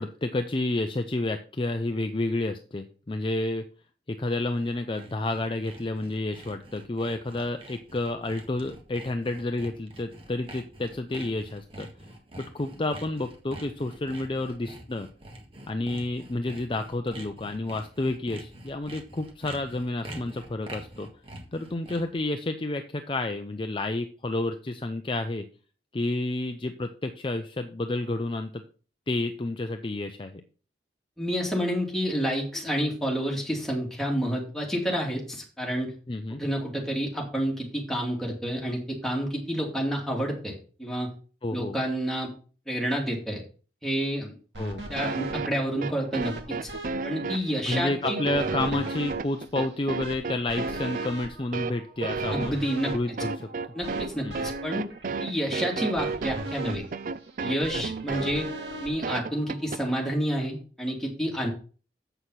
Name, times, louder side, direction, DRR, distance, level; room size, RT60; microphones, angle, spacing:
voice 1, 0.0-3.6 4.1-11.9 12.4-15.1 15.7-21.1 21.5-25.5 25.9-28.6 29.1-30.4 36.1-36.4 41.4-41.8 44.6-44.9 47.7-52.6 52.9-53.5 54.2-54.3 58.1-58.3 61.4-61.5, left 2 dB, 30° left, 7 dB, 0.6 m, -30 dB
Sawing, 4.4-22.2, right 1 dB, 35° right, 1.7 m, -45 dB
voice 2, 31.2-35.9 36.4-41.1 41.5-42.3 42.7-43.4 43.8-44.3 44.9-46.6 47.0-48.2 52.3-52.9 53.7-54.9 55.2-56.8 57.4-58.5 58.8-61.5, equal, ahead, -2 dB, 2.7 m, -29 dB
sound 1, 44.5-59.8, right 1 dB, 85° right, 2.6 m, -41 dB
sound 2, 45.0-59.8, right 4 dB, 50° right, 0.5 m, -33 dB
8.0 x 6.4 x 5.6 m, 0.39 s
head